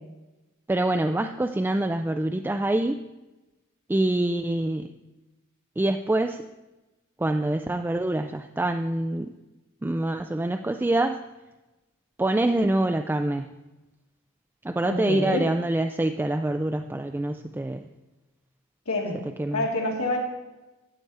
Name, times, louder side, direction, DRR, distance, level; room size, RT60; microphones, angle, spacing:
voice 1, 0.7-3.0 3.9-4.9 5.8-6.4 7.2-9.3 9.8-11.2 12.2-13.5 14.6-17.9 19.4-19.6, right 1 dB, 10° right, 6 dB, 0.3 m, -25 dB
voice 2, 14.8-15.5 18.9-19.2 19.5-20.2, left 2 dB, 85° left, -2 dB, 2.7 m, -27 dB
13.0 x 8.0 x 4.2 m, 1.1 s
head